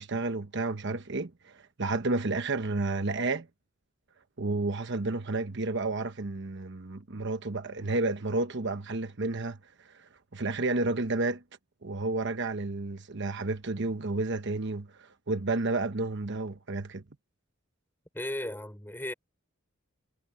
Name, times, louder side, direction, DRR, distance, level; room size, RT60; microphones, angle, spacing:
voice 1, 0.0-3.5 4.4-9.6 9.8-11.4 11.8-17.0, right 2 dB, 55° right, 1.1 m, -31 dB
voice 2, 18.1-19.1, left 1 dB, 10° left, 5.7 m, -35 dB
head